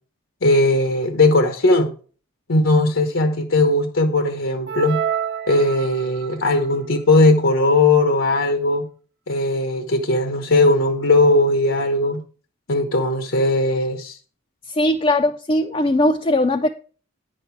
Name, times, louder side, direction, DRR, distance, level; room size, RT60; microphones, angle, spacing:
voice 1, 0.4-1.9 2.5-5.0 5.5-8.9 9.3-12.2 12.7-14.2, left 2 dB, 75° left, 1.0 m, -18 dB
sound 1, 4.7-6.3, right 9 dB, 55° right, 0.8 m, -27 dB
voice 2, 14.7-16.7, left 1 dB, 25° left, 0.5 m, -19 dB
9.8 x 6.5 x 4.6 m
head